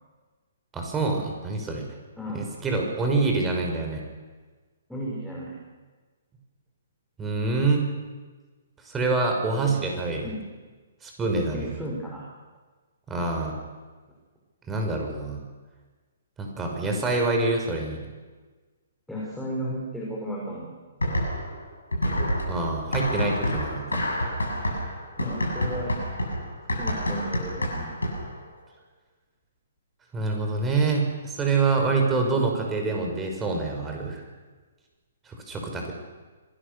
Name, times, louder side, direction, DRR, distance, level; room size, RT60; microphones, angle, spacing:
voice 1, 0.7-1.8 2.3-4.0 7.2-7.9 8.8-10.3 11.0-11.7 13.1-13.5 14.7-15.4 16.4-18.0 22.5-24.1 30.1-34.2 35.3-35.9, right 3 dB, 15° right, 1 dB, 5.4 m, -26 dB
voice 2, 2.2-2.5 4.9-5.5 9.6-9.9 10.2-10.5 11.5-12.2 19.1-20.7 25.2-25.9 26.7-28.0, equal, ahead, -4 dB, 6.1 m, -34 dB
sound 1, 21.0-21.6 21.9-28.4, equal, 85° left, 7.7 m, -28 dB
26.5 x 20.0 x 6.9 m, 1.3 s
figure-of-eight pair, 125°, 0 cm